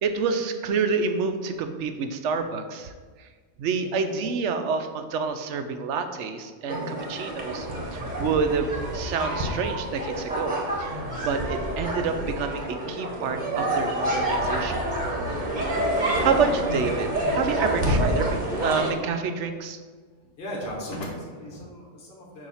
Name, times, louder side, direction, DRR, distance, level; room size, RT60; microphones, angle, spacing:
voice 1, 0.0-2.9 3.6-14.8 16.2-19.8, right 5 dB, 90° right, 7 dB, 0.9 m, -28 dB
voice 2, 5.0-5.4 17.5-17.7 20.4-22.5, equal, 55° left, -2 dB, 1.3 m, -37 dB
sound 1, 6.7-18.9, right 1 dB, 40° right, 1.2 m, -28 dB
7.1 x 2.8 x 5.5 m, 1.5 s
omnidirectional pair, 1.2 m